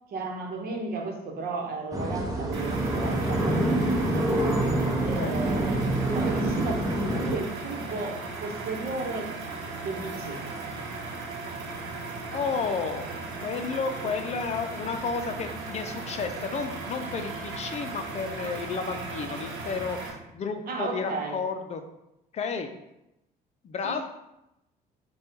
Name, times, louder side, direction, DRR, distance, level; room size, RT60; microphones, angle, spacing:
voice 1, 0.1-4.3 5.0-5.9 6.1-9.3 9.8-10.4 20.7-21.4 23.8-24.0, right 3 dB, 60° right, 2 dB, 1.0 m, -34 dB
sound 1, 1.9-7.4, right 1 dB, 20° right, 1.0 m, -26 dB
sound 2, 2.5-20.1, right 3 dB, 85° right, 0.8 m, -37 dB
voice 2, 12.3-13.0 13.4-21.8 22.3-22.7 23.6-24.0, left 5 dB, 40° left, 7 dB, 0.5 m, -32 dB
4.8 x 2.3 x 4.5 m, 0.88 s
cardioid pair, 110°, 17 cm